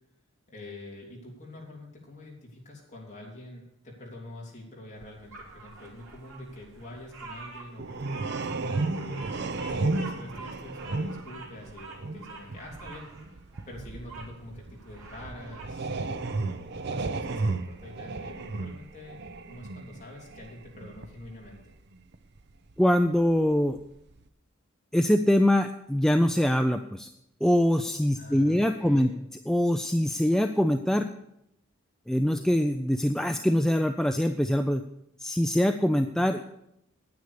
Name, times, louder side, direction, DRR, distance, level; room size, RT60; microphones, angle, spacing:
voice 1, 0.5-13.1 13.7-19.2 19.5-21.7 28.1-29.2, left 1 dB, 35° left, -3 dB, 3.2 m, -46 dB
sound 1, 5.0-5.1 5.4-7.4 7.8-23.8 24.1-24.2, right 3 dB, 50° right, 0.6 m, -34 dB
Bird vocalization bird call bird song, 5.3-14.3 14.7-15.8, right 3 dB, 80° right, 2.5 m, -46 dB
voice 2, 22.8-23.8 24.9-27.1 27.4-29.1 29.5-31.1 32.1-34.8 35.2-36.4, equal, ahead, 6 dB, 0.3 m, -23 dB
9.5 x 9.3 x 6.7 m, 0.80 s
head